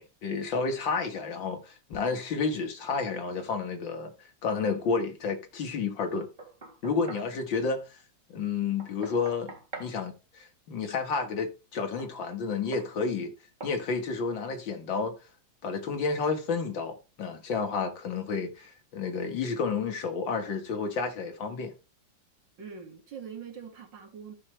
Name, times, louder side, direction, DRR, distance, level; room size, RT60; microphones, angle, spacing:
voice 1, 0.0-4.1 4.4-6.3 6.8-8.0 8.3-9.5 9.8-13.3 13.6-15.2 15.6-21.7, left 4 dB, 90° left, 2.3 m, -31 dB
Knock, 6.2-7.3 8.8-10.0 12.0-12.2 12.7-12.9 13.6-13.8, right 3 dB, 25° right, 1.7 m, -44 dB
voice 2, 22.6-24.3, right 6 dB, 75° right, 2.6 m, -43 dB
14.0 x 5.8 x 3.2 m
omnidirectional pair, 2.0 m